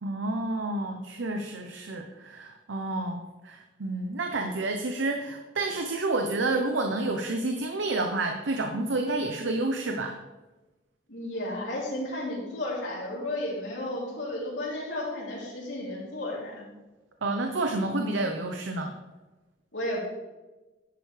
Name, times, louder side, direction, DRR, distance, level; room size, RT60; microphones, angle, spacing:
voice 1, 0.0-10.2 17.2-18.9, right 2 dB, 85° right, 5 dB, 0.7 m, -29 dB
voice 2, 11.1-16.7 19.7-20.0, left 1 dB, 80° left, -5 dB, 3.3 m, -33 dB
11.0 x 7.9 x 3.3 m, 1.1 s
head